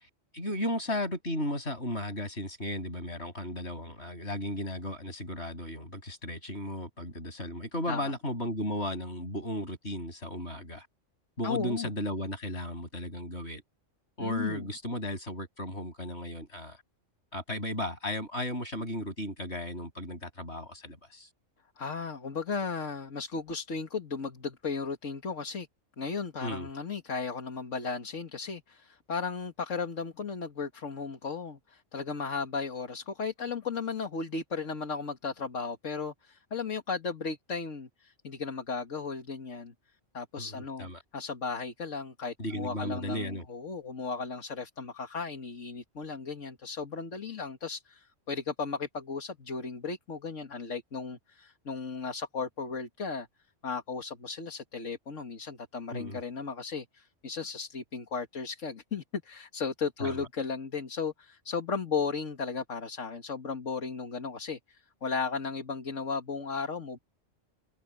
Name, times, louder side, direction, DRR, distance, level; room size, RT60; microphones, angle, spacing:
voice 1, 0.3-10.9 11.4-13.6 14.2-16.8 17.3-21.3 26.4-26.7 40.4-41.0 42.4-43.5 55.9-56.2 60.0-60.3, left 1 dB, 60° left, 8.0 m, -35 dB
voice 2, 11.4-11.9 14.2-14.6 21.8-25.7 26.0-39.7 40.1-53.3 53.6-67.0, left 5 dB, 80° left, 2.2 m, -35 dB
omnidirectional pair, 1.3 m